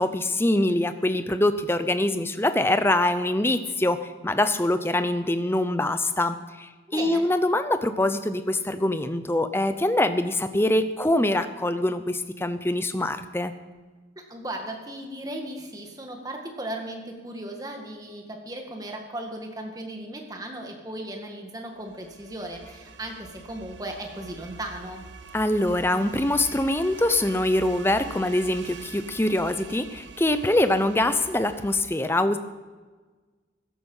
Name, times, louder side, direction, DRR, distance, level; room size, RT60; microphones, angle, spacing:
voice 1, 0.0-13.5 25.3-32.4, left 1 dB, 10° left, 10 dB, 0.7 m, -24 dB
voice 2, 6.9-7.3 14.2-25.1, right 1 dB, 20° right, 2 dB, 1.9 m, -36 dB
sound 1, 21.8-31.8, right 5 dB, 75° right, 0.8 m, -44 dB
14.5 x 11.5 x 5.6 m, 1.4 s
head